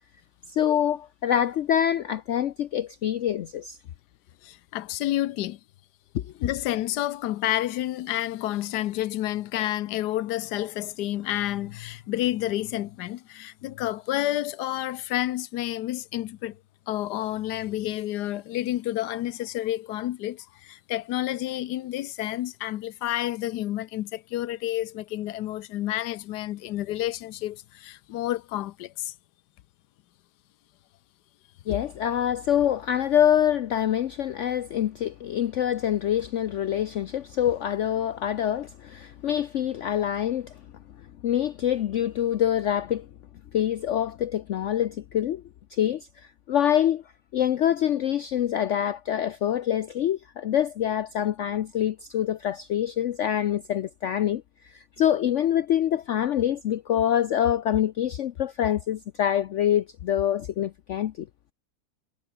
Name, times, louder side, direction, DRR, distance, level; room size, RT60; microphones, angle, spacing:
voice 1, 0.5-3.8 6.1-6.3 31.7-40.5 41.2-43.1 43.5-45.4 45.7-46.1 46.5-47.0 47.3-61.3, left 10 dB, 60° left, 0.8 m, -25 dB
voice 2, 4.4-5.6 6.4-16.6 16.9-29.1, left 14 dB, 90° left, 1.3 m, -30 dB
omnidirectional pair, 1.7 m